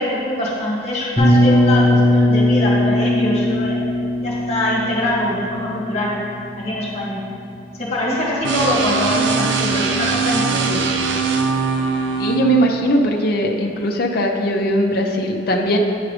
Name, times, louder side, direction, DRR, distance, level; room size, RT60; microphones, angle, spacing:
voice 1, 0.0-3.9 4.2-6.1 6.6-7.2 7.8-10.9, left 1 dB, 35° left, -5 dB, 2.0 m, -23 dB
sound 1, 1.2-6.9, left 1 dB, 15° right, 1.3 m, -18 dB
sound 2, 8.4-12.4, right 4 dB, 75° right, 0.6 m, -21 dB
voice 2, 12.2-15.8, equal, 55° left, 1 dB, 0.7 m, -19 dB
8.9 x 4.8 x 5.0 m, 2.6 s
head